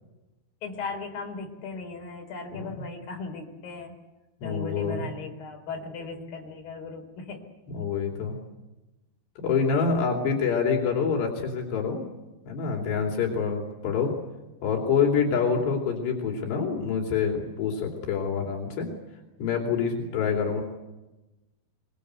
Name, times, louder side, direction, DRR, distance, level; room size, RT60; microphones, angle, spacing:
voice 1, 0.6-3.9 4.4-7.4 10.2-10.4 15.3-15.6 20.2-20.4, left 4 dB, 60° left, 2 dB, 6.0 m, -37 dB
voice 2, 4.4-5.1 7.7-8.4 9.4-12.1 12.5-14.1 14.6-18.9 19.4-20.6, left 6 dB, 85° left, 1 dB, 5.1 m, -26 dB
24.0 x 23.5 x 8.2 m, 1.0 s
omnidirectional pair, 4.8 m